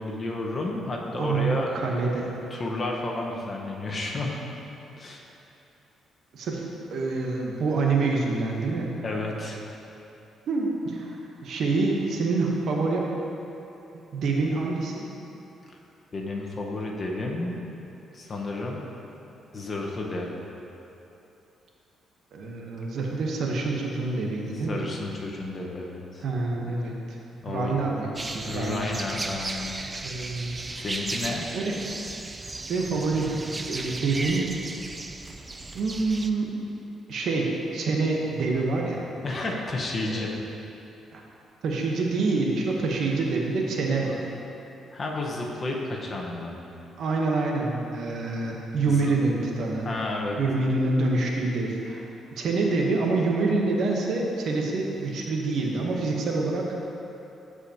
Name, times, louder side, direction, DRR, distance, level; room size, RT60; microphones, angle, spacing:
voice 1, 0.0-1.7 2.5-4.4 5.0-5.2 9.0-9.6 15.7-15.8 16.1-17.5 18.1-18.8 19.5-20.3 24.7-26.2 27.4-27.8 28.4-29.8 30.7-31.5 39.2-40.3 44.9-46.6 48.8-49.1 49.8-50.4, left 2 dB, 40° left, -1 dB, 1.1 m, -31 dB
voice 2, 1.2-2.3 6.3-6.7 6.9-8.9 10.5-13.1 13.9-15.1 22.3-24.8 26.2-27.2 27.5-28.9 30.0-30.8 31.5-31.9 32.7-33.3 33.7-34.5 35.7-36.6 37.1-39.0 40.1-40.3 41.1-41.2 41.6-44.2 47.0-49.9 50.4-52.0 52.4-56.7, right 3 dB, 65° right, -1 dB, 1.0 m, -26 dB
sound 1, 28.2-36.3, right 2 dB, 25° right, 0.4 m, -35 dB
13.0 x 4.8 x 2.9 m, 2.9 s
cardioid pair, 90°, 0 cm